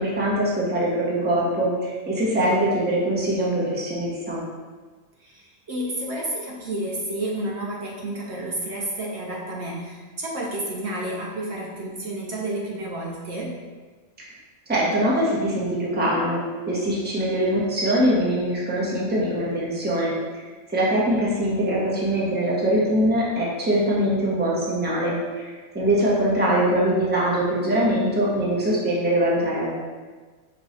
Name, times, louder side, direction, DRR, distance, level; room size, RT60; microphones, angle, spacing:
voice 1, 0.0-4.4 14.2-14.3 14.7-16.4 16.7-20.1 20.7-29.7, right 1 dB, 10° right, -6 dB, 0.7 m, -23 dB
voice 2, 5.2-13.5, right 1 dB, 65° right, -3 dB, 0.9 m, -30 dB
5.3 x 2.3 x 4.0 m, 1.4 s
omnidirectional pair, 1.3 m